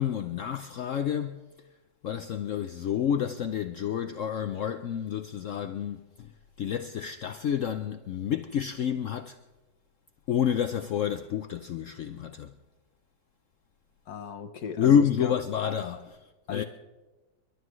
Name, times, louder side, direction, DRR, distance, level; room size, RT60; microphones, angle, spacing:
voice 1, 0.0-1.4 2.0-6.3 6.6-9.4 10.3-12.5 14.8-16.6, left 8 dB, 80° left, 0.7 m, -29 dB
voice 2, 14.1-15.3 16.5-16.6, left 7 dB, 60° left, 1.4 m, -36 dB
29.5 x 12.0 x 3.1 m
omnidirectional pair, 2.0 m